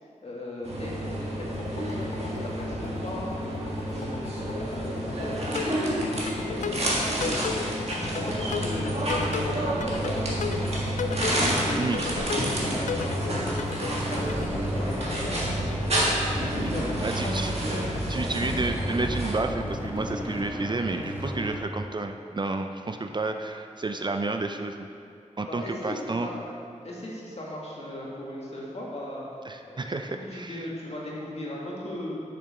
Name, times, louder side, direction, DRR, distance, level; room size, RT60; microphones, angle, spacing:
voice 1, 0.2-1.1 1.4-2.1 2.4-7.3 7.9-10.9 11.4-17.4 22.9-23.0 25.5-26.0 26.2-26.3 26.8-29.3 29.6-30.0 30.3-32.2, left 1 dB, 55° left, -5 dB, 2.0 m, -38 dB
sound 1, 0.6-19.3, right 1 dB, 55° right, 1.8 m, -29 dB
sound 2, 1.5-20.2, left 6 dB, 70° left, 0.4 m, -37 dB
voice 2, 11.8-12.5 16.4-16.6 17.0-17.5 18.1-24.9 25.4-26.3 29.5-30.7, right 3 dB, 35° right, 5 dB, 0.5 m, -31 dB
sound 3, 12.6-21.6, equal, 15° right, 1.3 m, -35 dB
6.8 x 6.6 x 5.1 m, 2.4 s
wide cardioid pair, 65°, 13 cm